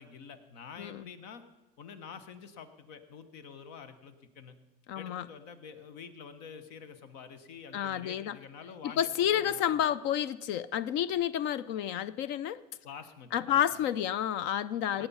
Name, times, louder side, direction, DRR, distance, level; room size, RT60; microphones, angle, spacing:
voice 1, 0.0-1.4 1.8-4.5 4.9-9.9 12.8-13.6 15.0-15.1, left 6 dB, 85° left, 1.1 m, -48 dB
voice 2, 4.9-5.3 7.7-8.3 9.0-12.6 13.3-15.1, left 10 dB, 70° left, 0.5 m, -30 dB
17.5 x 8.9 x 5.5 m
supercardioid pair, 110°, 20 cm